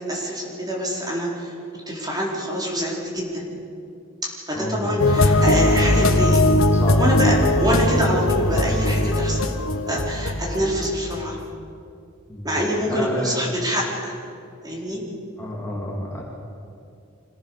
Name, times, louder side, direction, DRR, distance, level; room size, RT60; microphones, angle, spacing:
voice 1, 0.1-1.5 1.9-3.4 4.4-6.4 7.0-9.5 9.9-11.4 12.4-14.2 14.6-15.0, equal, 20° right, -3 dB, 4.4 m, -25 dB
voice 2, 4.5-5.3 6.7-7.5 12.3-13.5 15.4-16.2, left 1 dB, 15° left, -3 dB, 3.0 m, -30 dB
sound 1, 5.0-11.4, left 1 dB, 90° left, 1.4 m, -20 dB
sound 2, 5.3-11.4, equal, ahead, 2.9 m, -31 dB
26.0 x 17.0 x 7.0 m, 2.5 s
head